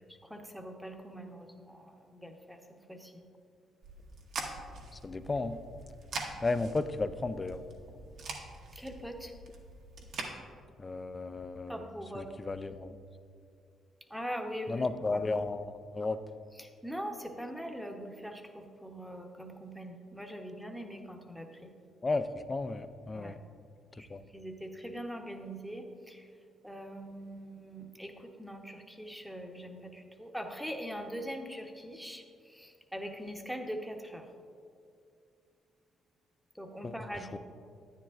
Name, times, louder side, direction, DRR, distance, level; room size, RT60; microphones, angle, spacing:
voice 1, 0.1-2.6 2.9-3.2 8.2-8.3 8.7-9.3 11.7-12.3 14.1-15.3 16.5-21.7 23.1-23.4 23.9-26.3 26.6-34.3 36.5-37.4, equal, ahead, 4 dB, 0.9 m, -42 dB
sound 1, 3.8-10.3, right 3 dB, 70° right, 1.1 m, -44 dB
voice 2, 5.0-5.6 6.4-7.6 10.8-11.8 12.2-13.0 14.7-16.2 22.0-23.4 24.1-24.2 36.8-36.9 37.3-37.4, left 3 dB, 25° left, 11 dB, 0.4 m, -33 dB
10.0 x 9.4 x 2.4 m, 2.4 s
cardioid pair, 90°, 0 cm